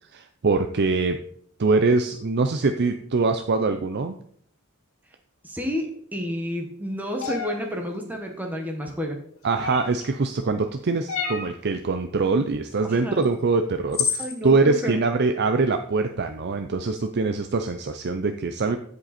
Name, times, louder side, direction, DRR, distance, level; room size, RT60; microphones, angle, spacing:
voice 1, 0.1-1.2 1.6-4.2 9.4-18.8, right 3 dB, 50° right, 7 dB, 0.6 m, -23 dB
voice 2, 5.4-5.9 6.1-9.2 12.8-13.2 14.2-15.0, equal, 10° right, 1 dB, 1.4 m, -30 dB
sound 1, 7.2-7.5 9.6-10.0 11.1-11.5 13.2-13.3 13.9-14.3, left 6 dB, 65° left, 2.4 m, -28 dB
14.5 x 5.4 x 4.3 m, 0.62 s
head